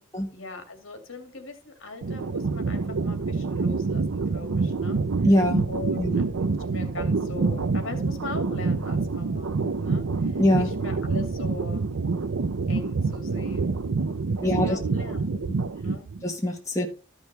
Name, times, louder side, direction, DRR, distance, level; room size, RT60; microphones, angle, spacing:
voice 1, 0.3-5.0 5.7-9.5 9.8-11.8 12.7-13.8 14.2-15.4 15.8-16.1, left 3 dB, 75° left, 2.3 m, -41 dB
sound 1, 2.0-16.2, right 4 dB, 80° right, 0.6 m, -27 dB
voice 2, 5.2-5.6 6.0-6.2 10.4-10.7 14.4-14.8 15.4-15.5 16.2-16.9, left 1 dB, 15° left, 1.6 m, -23 dB
13.0 x 6.3 x 3.3 m
head